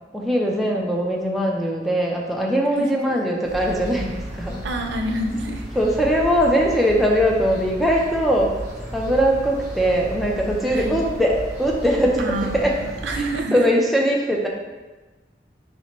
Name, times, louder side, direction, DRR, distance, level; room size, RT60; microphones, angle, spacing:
voice 1, 0.1-4.6 5.8-8.5 8.9-12.3 12.5-12.7 13.5-14.5, equal, ahead, -2 dB, 0.4 m, -21 dB
sound 1, 3.4-13.4, equal, 20° right, 1.5 m, -34 dB
voice 2, 4.6-5.7 10.7-11.0 12.2-13.6, right 1 dB, 85° right, 3 dB, 0.5 m, -27 dB
4.3 x 3.3 x 2.9 m, 1.2 s
head